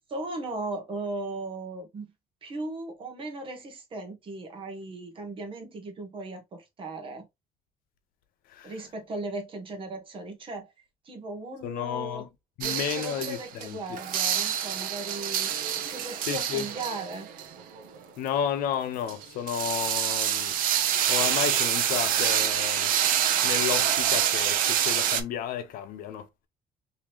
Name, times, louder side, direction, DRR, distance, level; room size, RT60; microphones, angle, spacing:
voice 1, 0.1-2.1 2.4-7.2 8.6-10.7 11.0-12.2 12.6-15.5 15.9-17.3, right 2 dB, 35° right, 1.2 m, -37 dB
voice 2, 11.6-12.3 12.6-13.8 16.3-16.7 18.2-20.5 21.1-22.9 23.4-26.3, left 9 dB, 85° left, 0.9 m, -32 dB
sound 1, 12.6-13.7 14.0-18.0 19.1-25.2, right 10 dB, 75° right, 0.6 m, -26 dB
3.7 x 3.0 x 3.1 m
cardioid pair, 145°, 15 cm